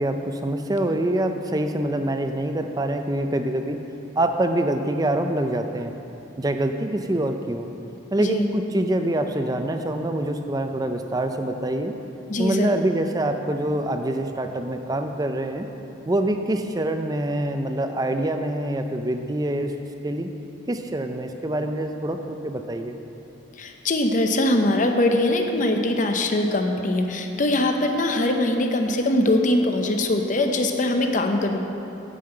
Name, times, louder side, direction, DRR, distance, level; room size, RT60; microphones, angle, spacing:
voice 1, 0.0-3.8 4.2-5.9 6.4-7.7 8.1-11.9 12.4-15.7 16.1-19.7 20.0-20.3 20.7-22.9, right 1 dB, 20° right, 6 dB, 0.4 m, -25 dB
voice 2, 12.3-12.8 23.6-31.6, left 1 dB, 45° left, 4 dB, 0.7 m, -22 dB
10.0 x 5.6 x 7.7 m, 2.9 s
head